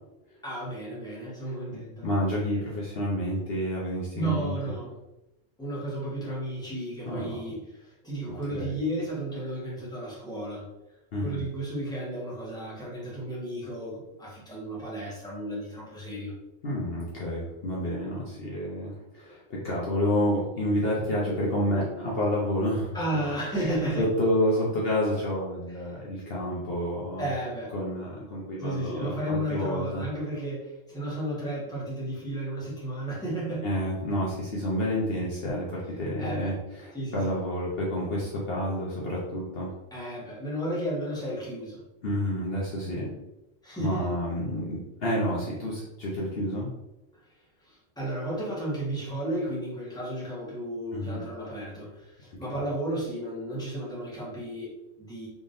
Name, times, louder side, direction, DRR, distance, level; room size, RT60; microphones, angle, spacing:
voice 1, 0.4-2.1 4.1-4.9 5.6-10.7 11.2-16.3 22.9-24.0 25.7-26.0 27.2-27.7 28.6-33.6 36.2-36.5 36.9-37.4 39.9-41.8 43.6-44.1 47.6-55.3, right 1 dB, 5° left, -8 dB, 1.3 m, -33 dB
voice 2, 1.4-4.6 7.1-7.3 8.5-8.7 11.1-11.4 16.6-23.0 24.0-27.3 27.7-30.0 33.6-39.7 42.0-43.1 43.8-46.7 50.9-51.3, equal, 55° left, -5 dB, 1.0 m, -29 dB
3.7 x 3.5 x 2.6 m, 0.95 s
omnidirectional pair, 1.3 m